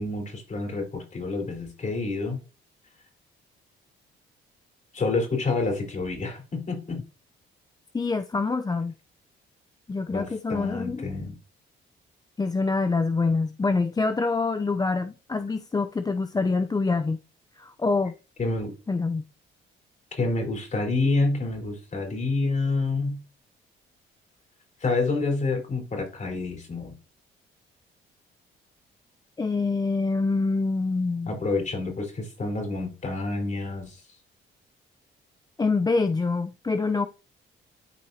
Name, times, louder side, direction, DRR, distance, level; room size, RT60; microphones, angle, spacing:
voice 1, 0.0-2.4 4.9-7.0 10.1-11.4 18.4-18.7 20.1-23.2 24.8-27.0 31.3-34.0, left 3 dB, 40° left, 4.2 m, -28 dB
voice 2, 7.9-8.9 9.9-11.1 12.4-17.2 17.6-18.1 18.9-19.2 29.4-31.3 35.6-37.1, left 3 dB, 20° left, 0.5 m, -25 dB
12.0 x 4.8 x 2.8 m
cardioid pair, 90°, 20 cm